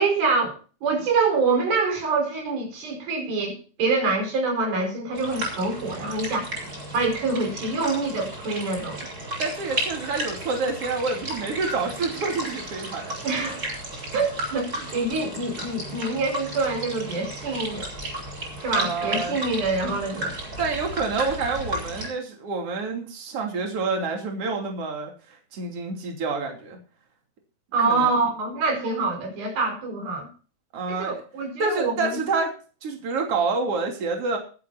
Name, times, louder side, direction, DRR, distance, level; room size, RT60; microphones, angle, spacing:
voice 1, 0.0-6.5 6.9-9.1 13.2-13.6 14.1-17.9 18.6-20.3 27.7-30.3 30.9-32.2, right 3 dB, 70° right, 2 dB, 6.7 m, -25 dB
sound 1, 5.1-22.1, right 1 dB, 20° right, 7.3 m, -34 dB
voice 2, 9.4-13.2 18.7-19.4 20.6-26.8 27.8-28.1 30.7-31.1 31.6-32.5 32.8-34.4, right 4 dB, 40° right, 2 dB, 3.6 m, -28 dB
21.0 x 10.5 x 2.8 m, 0.38 s
omnidirectional pair, 4.4 m